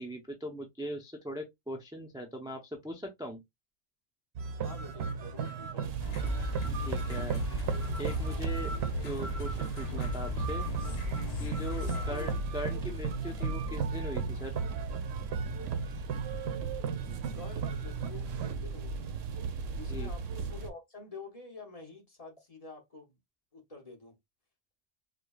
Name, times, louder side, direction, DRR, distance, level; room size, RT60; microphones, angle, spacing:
voice 1, 0.0-3.4 6.8-7.4 8.0-8.7 9.0-10.7 11.3-14.5 19.8-20.1, equal, 5° right, 0.4 m, -40 dB
sound 1, 4.4-18.6, right 5 dB, 65° right, 0.8 m, -36 dB
voice 2, 4.6-5.9 11.9-12.2 17.3-19.2 19.8-23.1 23.5-24.1, left 3 dB, 35° left, 0.9 m, -48 dB
sound 2, 5.8-20.7, right 4 dB, 85° right, 1.0 m, -38 dB
sound 3, 6.0-12.4, left 9 dB, 55° left, 0.4 m, -39 dB
4.9 x 2.2 x 2.3 m
omnidirectional pair, 1.3 m